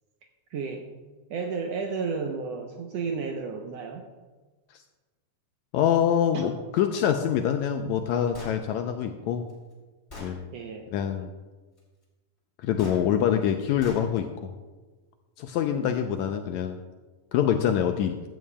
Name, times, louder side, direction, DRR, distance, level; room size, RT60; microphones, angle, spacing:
voice 1, 0.5-0.9 1.3-4.1 6.3-6.5 10.5-10.9 15.7-16.0, right 5 dB, 75° right, 3 dB, 1.6 m, -32 dB
voice 2, 5.7-9.4 10.2-10.4 10.9-11.3 12.6-14.5 15.4-16.8 17.3-18.2, left 9 dB, 80° left, 6 dB, 1.7 m, -25 dB
Gunshot gunfire, 8.3-8.6 9.5-9.6 10.1-10.4 12.8-13.0 13.8-14.1, left 1 dB, 25° left, 2.1 m, -41 dB
15.0 x 12.5 x 2.2 m, 1.3 s
omnidirectional pair, 3.7 m